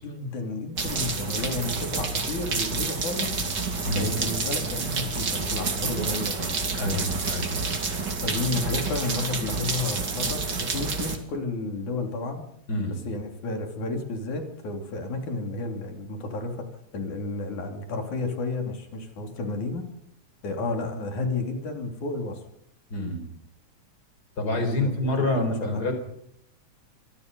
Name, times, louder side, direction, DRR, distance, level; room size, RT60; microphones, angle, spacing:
voice 1, 0.0-3.4 3.9-6.6 8.2-12.4 12.8-16.7 16.9-19.9 20.4-22.4 24.5-25.9, left 3 dB, 90° left, 4 dB, 4.8 m, -32 dB
sound 1, 0.8-11.2, right 4 dB, 35° right, 3.1 m, -29 dB
voice 2, 3.8-4.2 6.8-7.6 12.7-13.0 22.9-23.3 24.4-26.0, left 1 dB, 30° left, 6 dB, 5.2 m, -27 dB
25.5 x 25.0 x 5.5 m, 0.71 s
omnidirectional pair, 3.3 m